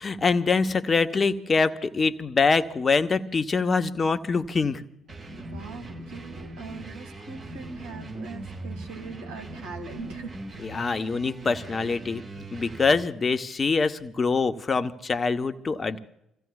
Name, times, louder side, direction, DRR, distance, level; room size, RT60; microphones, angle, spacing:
voice 1, 0.0-4.8 10.6-16.0, left 4 dB, 35° left, 10 dB, 1.0 m, -24 dB
sound 1, 5.1-13.0, right 2 dB, 50° right, 6.8 m, -40 dB
voice 2, 5.4-10.4, right 3 dB, 75° right, 3 dB, 2.0 m, -41 dB
28.5 x 15.5 x 2.4 m, 0.81 s
hypercardioid pair, 50°, 0 cm